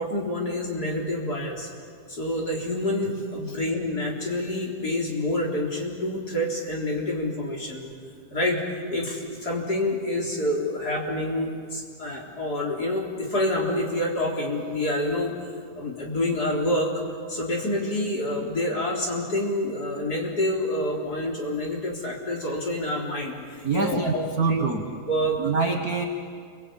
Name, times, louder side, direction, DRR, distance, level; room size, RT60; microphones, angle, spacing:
voice 1, 0.0-1.7 2.1-7.9 8.3-8.6 8.9-15.3 15.8-16.9 17.3-24.6 25.1-25.4, left 1 dB, 30° left, -1 dB, 4.1 m, -27 dB
voice 2, 23.6-24.8 25.4-26.0, right 4 dB, 45° right, 4 dB, 1.2 m, -25 dB
29.0 x 23.5 x 8.7 m, 2.1 s
omnidirectional pair, 3.5 m